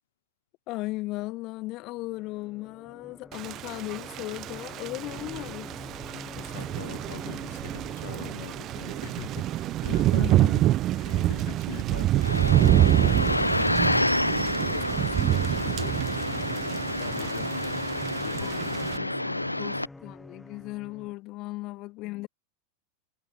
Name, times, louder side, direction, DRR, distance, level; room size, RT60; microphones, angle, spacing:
voice 1, 0.7-5.7 9.9-10.6 18.4-19.1 19.6-22.3, left 20 dB, 40° left, 1.7 m, -37 dB
sound 1, 1.7-21.1, left 2 dB, 5° left, 7.0 m, -47 dB
Thunder / Rain, 3.3-19.0, right 14 dB, 35° right, 1.3 m, -27 dB
voice 2, 6.1-10.6 10.9-17.5 18.2-19.9, left 12 dB, 60° left, 7.1 m, -43 dB
sound 2, 12.2-19.9, left 1 dB, 85° left, 0.4 m, -28 dB
figure-of-eight pair, 90°, 0 cm